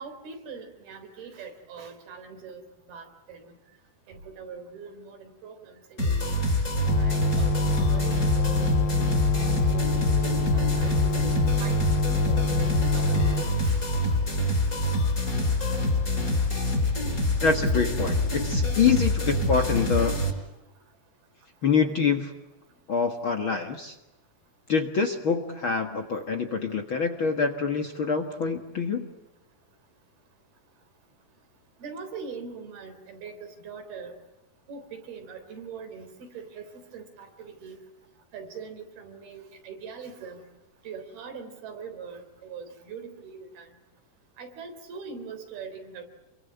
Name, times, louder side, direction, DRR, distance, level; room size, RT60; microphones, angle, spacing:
voice 1, 0.0-2.6 2.9-3.6 4.1-6.3 6.9-13.8 31.8-34.1 34.7-37.8 38.3-40.4 40.8-43.7 44.4-46.1, right 5 dB, 85° right, 6 dB, 5.7 m, -42 dB
sound 1, 6.0-20.3, left 1 dB, 20° left, 5.0 m, -26 dB
sound 2, 6.9-13.4, left 2 dB, 80° left, 3.9 m, -26 dB
voice 2, 17.4-20.1 21.6-22.3 22.9-23.9 24.7-29.1, left 5 dB, 50° left, 5 dB, 1.6 m, -25 dB
28.0 x 23.5 x 8.0 m, 0.96 s
omnidirectional pair, 4.3 m